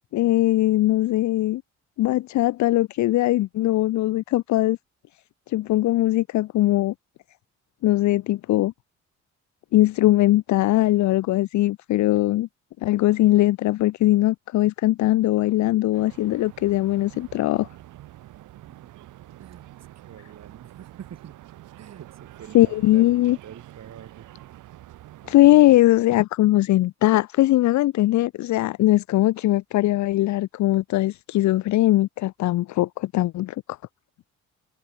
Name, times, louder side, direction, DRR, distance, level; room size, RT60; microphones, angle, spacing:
voice 1, 0.0-1.6 2.0-4.8 5.5-6.9 7.8-8.7 9.7-12.5 12.8-17.7 22.5-23.4 25.3-33.6, left 16 dB, 70° left, 0.6 m, -20 dB
sound 1, 15.9-25.8, right 14 dB, 85° right, 2.6 m, -46 dB
voice 2, 18.5-19.1 19.4-19.7 20.0-21.3 21.8-24.3, right 9 dB, 60° right, 4.8 m, -45 dB
cardioid pair, 90°, 30 cm